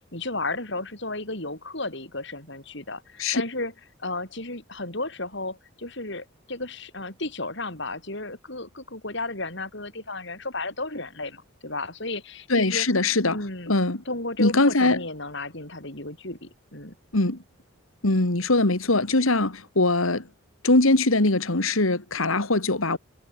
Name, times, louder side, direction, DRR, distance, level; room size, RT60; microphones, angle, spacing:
voice 1, 0.1-3.7 4.0-12.9 13.3-13.7 14.1-16.9, left 2 dB, 55° left, 7.2 m, -33 dB
voice 2, 12.5-13.4 13.7-14.0 14.4-15.0 17.1-17.4 18.0-20.3 20.6-23.0, left 2 dB, 80° left, 2.4 m, -21 dB
head